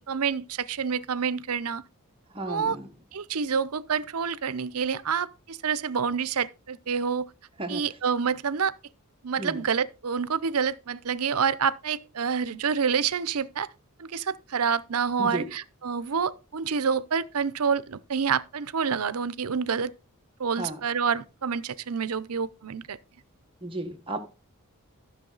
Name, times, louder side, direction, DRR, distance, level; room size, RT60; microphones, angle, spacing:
voice 1, 0.1-1.8 2.5-2.8 3.1-7.3 7.7-8.7 9.2-13.7 14.0-19.9 20.4-23.0, right 6 dB, 85° right, 0.7 m, -28 dB
voice 2, 2.3-2.9 7.6-7.8 9.4-9.6 15.2-15.5 20.5-20.8 23.6-24.2, right 1 dB, 25° right, 1.4 m, -33 dB
13.5 x 6.4 x 4.0 m
head